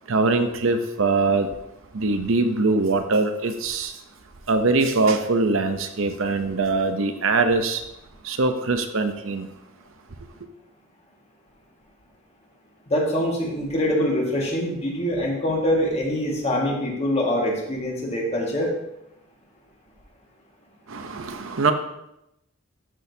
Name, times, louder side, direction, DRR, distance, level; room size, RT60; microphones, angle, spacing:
voice 1, 0.1-1.5 1.9-3.9 4.5-7.8 8.2-9.5 20.9-21.7, right 3 dB, 70° right, 7 dB, 0.7 m, -22 dB
voice 2, 12.9-18.7, left 1 dB, 30° left, -1 dB, 1.8 m, -24 dB
12.5 x 6.3 x 2.8 m, 0.85 s
head